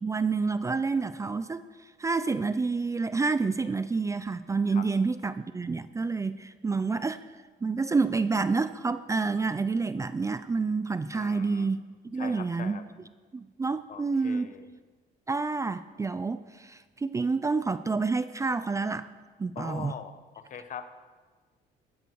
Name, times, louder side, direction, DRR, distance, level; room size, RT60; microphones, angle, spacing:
voice 1, 0.0-1.6 2.0-7.2 7.6-11.8 12.0-12.8 13.3-14.5 15.3-19.1 19.4-19.9, right 4 dB, 20° right, 13 dB, 0.5 m, -28 dB
voice 2, 11.1-11.7 12.1-12.8 13.9-14.7 19.5-20.9, left 7 dB, 50° left, 10 dB, 1.2 m, -42 dB
15.5 x 13.5 x 4.7 m, 1.4 s
cardioid pair, 110°, 17 cm